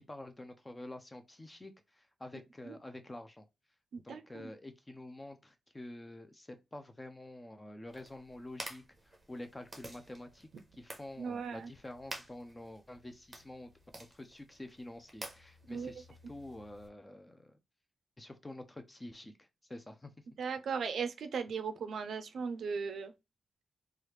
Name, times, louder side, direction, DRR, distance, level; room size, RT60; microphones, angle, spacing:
voice 1, 0.0-3.5 4.0-13.7 14.1-17.6 18.2-20.1, left 1 dB, 15° left, 0.4 m, -48 dB
voice 2, 3.9-4.5 11.2-11.7 15.7-15.9 20.4-23.1, right 5 dB, 70° right, 0.4 m, -37 dB
sound 1, 7.9-16.9, right 1 dB, 15° right, 0.7 m, -51 dB
3.1 x 2.3 x 3.2 m
wide cardioid pair, 165°, 0 cm